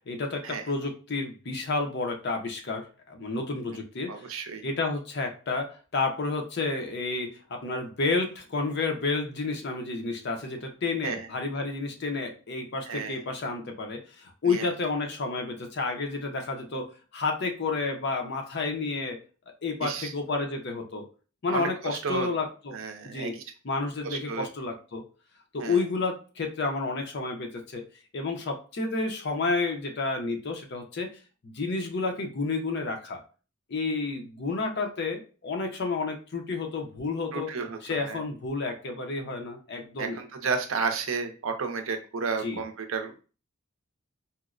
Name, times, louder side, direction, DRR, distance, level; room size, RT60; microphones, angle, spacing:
voice 1, 0.1-4.3 4.6-19.2 19.6-21.0 21.4-22.8 23.0-23.4 23.6-25.0 25.5-27.8 28.1-31.1 31.4-33.2 33.7-37.5 37.8-40.2 42.4-42.6, left 3 dB, 55° left, 3 dB, 0.6 m, -30 dB
voice 2, 4.1-4.6 11.0-11.3 12.9-13.2 14.5-14.7 19.8-20.1 21.5-22.3 22.7-23.3 24.0-24.5 25.6-25.8 37.3-38.2 40.0-43.2, right 5 dB, 75° right, 7 dB, 0.5 m, -32 dB
4.2 x 2.0 x 2.4 m, 0.35 s
head